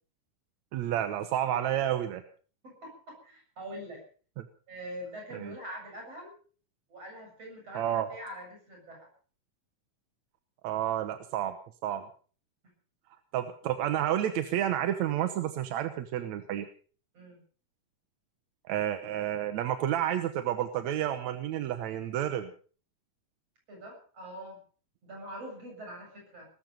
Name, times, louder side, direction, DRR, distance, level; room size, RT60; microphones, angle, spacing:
voice 1, 0.7-2.2 4.4-4.5 5.3-5.5 7.7-8.1 10.6-11.5 11.8-12.0 13.3-16.7 18.7-22.5, right 11 dB, 70° right, 9 dB, 2.1 m, -30 dB
voice 2, 2.6-4.0 4.7-6.3 6.9-9.1 17.1-17.4 23.7-24.6 25.0-26.5, equal, 50° right, 1 dB, 8.6 m, -44 dB
19.5 x 13.5 x 5.2 m, 0.41 s
omnidirectional pair, 3.6 m